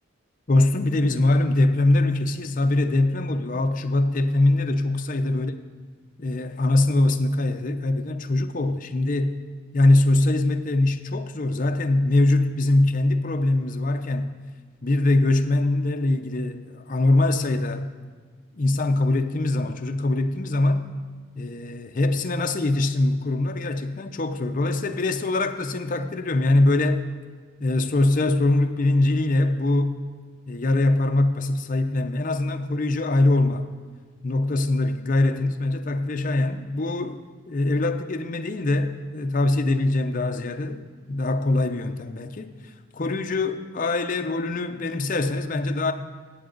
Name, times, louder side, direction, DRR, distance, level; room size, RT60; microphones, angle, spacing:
voice 1, 0.5-5.6 6.2-9.4 9.7-14.4 14.8-17.9 18.6-20.9 21.4-27.0 27.6-30.0 30.5-33.7 34.2-37.2 37.5-42.5 42.9-45.9, left 2 dB, 40° left, 6 dB, 0.6 m, -22 dB
15.5 x 7.7 x 3.9 m, 1.5 s
head